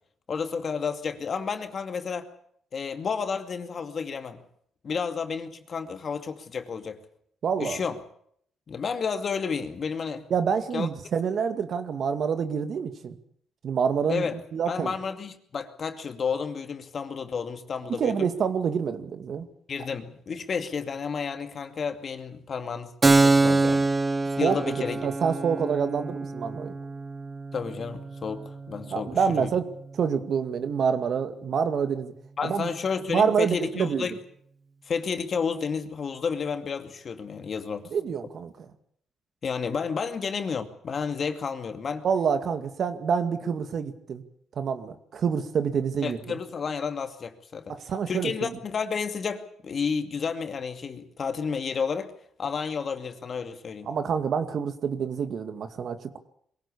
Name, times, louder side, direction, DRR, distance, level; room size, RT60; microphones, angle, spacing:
voice 1, 0.3-2.3 2.7-4.4 4.8-7.0 7.6-8.0 8.7-10.2 10.7-10.9 14.1-14.3 14.7-18.3 19.7-22.9 23.2-23.9 24.4-25.0 27.5-29.5 32.4-34.2 34.9-37.9 39.4-42.1 46.0-47.8 48.1-52.1 52.4-53.9, left 6 dB, 45° left, 2.4 m, -31 dB
voice 2, 7.4-7.8 10.3-13.2 13.6-14.9 18.0-19.5 24.4-24.8 25.0-26.7 28.9-29.7 29.9-32.1 32.4-32.7 33.1-34.1 37.9-38.7 42.0-44.2 44.6-46.4 47.7-48.5 53.9-56.2, right 6 dB, 60° right, 2.2 m, -27 dB
Keyboard (musical), 23.0-30.3, right 3 dB, 25° right, 1.0 m, -26 dB
22.5 x 17.0 x 8.6 m
cardioid pair, 90°, 0 cm